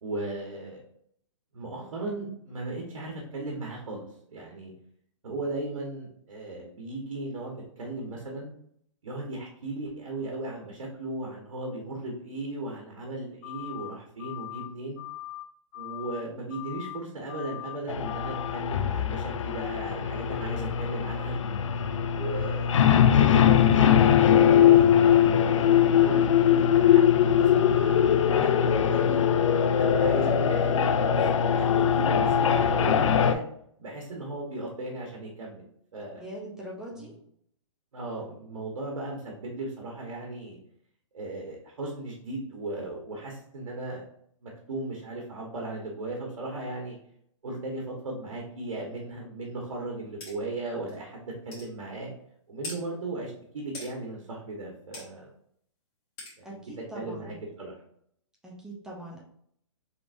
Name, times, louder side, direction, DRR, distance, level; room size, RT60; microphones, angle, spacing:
voice 1, 0.0-0.8 1.5-4.7 5.2-8.5 9.0-15.0 15.7-21.4 22.1-22.8 23.1-24.9 25.7-29.2 29.8-33.4 33.8-35.6 35.9-36.2 36.9-37.1 37.9-40.6 41.1-44.0 44.4-47.0 47.4-52.1 52.5-55.3 56.4-56.6 56.9-57.7, right 2 dB, 80° right, -1 dB, 1.3 m, -36 dB
sound 1, 13.4-13.9 14.2-14.7 15.0-15.4 15.7-16.2 16.5-17.0 17.3-17.8 18.0-18.5, left 16 dB, 40° left, 1.0 m, -40 dB
sound 2, 17.9-33.3, left 9 dB, 70° left, 0.4 m, -21 dB
voice 2, 36.2-37.1 56.4-57.4 58.4-59.2, right 1 dB, 5° right, -3 dB, 0.5 m, -42 dB
sound 3, 50.2-50.3 50.9-51.0 51.5-51.7 52.6-52.8 53.7-53.9 54.9-55.1 56.2-56.3, left 2 dB, 25° left, 1.8 m, -40 dB
4.6 x 3.5 x 2.6 m, 0.67 s
hypercardioid pair, 155°, 16 cm